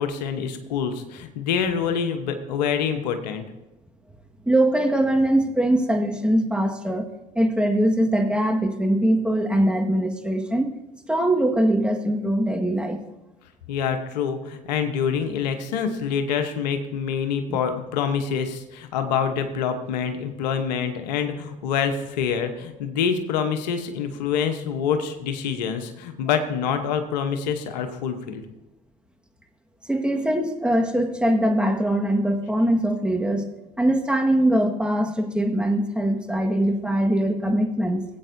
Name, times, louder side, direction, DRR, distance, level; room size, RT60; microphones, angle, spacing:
voice 1, 0.0-3.4 13.7-28.4, left 7 dB, 85° left, 7 dB, 1.0 m, -26 dB
voice 2, 4.5-7.1 7.3-10.7 11.1-13.0 17.5-17.6 29.9-33.5 33.8-38.1, right 1 dB, 5° right, 4 dB, 1.6 m, -22 dB
18.5 x 8.6 x 2.7 m, 0.97 s
hypercardioid pair, 65°, 21 cm